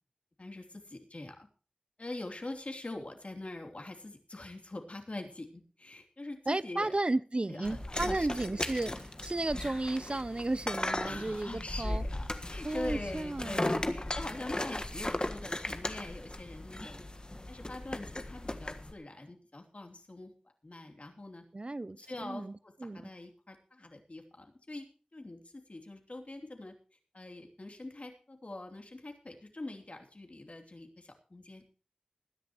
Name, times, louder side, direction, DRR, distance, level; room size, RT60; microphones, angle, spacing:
voice 1, 0.4-1.5 2.0-7.0 7.5-8.6 9.5-9.8 11.0-17.1 17.5-20.3 20.6-21.4 21.9-26.7 27.1-31.6, left 2 dB, 55° left, 3.1 m, -44 dB
voice 2, 6.5-12.0 12.6-13.9 21.5-23.0, right 2 dB, 40° right, 0.5 m, -34 dB
sound 1, 7.6-18.9, left 1 dB, 35° left, 1.5 m, -37 dB
21.0 x 10.5 x 3.0 m
wide cardioid pair, 65°, 3 cm